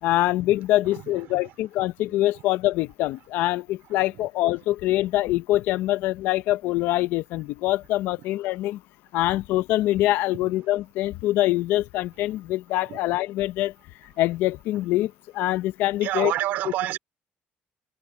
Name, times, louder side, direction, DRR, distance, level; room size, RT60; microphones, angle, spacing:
voice 1, 0.0-8.8 9.1-13.7 14.0-16.3, left 16 dB, 80° left, 0.7 m, -24 dB
voice 2, 16.0-17.0, right 15 dB, 70° right, 2.8 m, -27 dB
cardioid pair, 170°, 3 cm